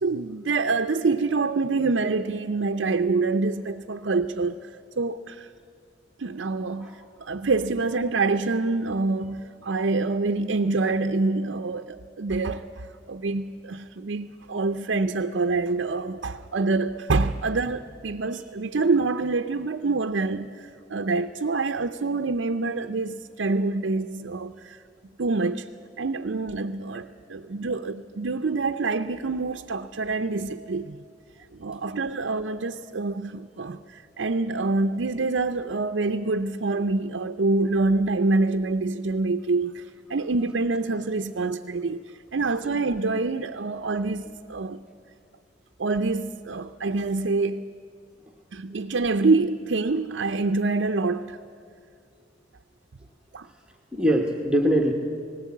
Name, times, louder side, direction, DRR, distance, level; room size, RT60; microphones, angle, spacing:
voice 1, 0.0-4.7 5.0-5.5 6.2-24.8 25.2-25.7 26.0-31.0 31.6-42.0 42.3-44.2 44.5-44.8 45.8-47.6 48.5-51.4 53.3-53.5, right 3 dB, 65° right, 0.6 m, -26 dB
voice 2, 53.9-54.9, equal, 5° right, 1.1 m, -23 dB
19.0 x 17.0 x 8.4 m
head